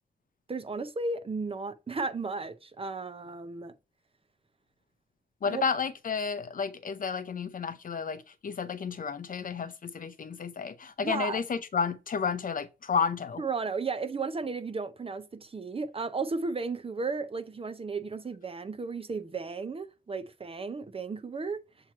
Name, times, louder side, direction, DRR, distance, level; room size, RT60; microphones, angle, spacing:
voice 1, 0.5-3.7 5.4-5.6 11.0-11.4 13.4-21.6, right 4 dB, 30° right, 0.6 m, -34 dB
voice 2, 5.4-13.4, left 6 dB, 45° left, 0.6 m, -31 dB
7.5 x 2.9 x 4.5 m
wide cardioid pair, 135°, 19 cm